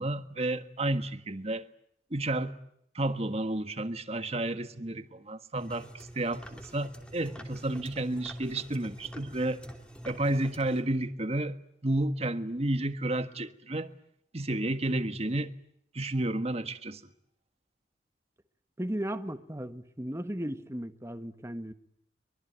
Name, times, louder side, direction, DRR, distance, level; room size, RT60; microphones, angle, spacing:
voice 1, 0.0-1.7 2.1-2.5 2.9-9.6 10.0-11.6 11.8-13.9 14.3-15.5 15.9-17.0, right 1 dB, 35° right, 1.5 m, -31 dB
sound 1, 5.5-10.8, equal, 5° left, 3.0 m, -46 dB
voice 2, 18.8-21.7, right 1 dB, 15° right, 1.4 m, -36 dB
24.0 x 23.5 x 9.5 m
head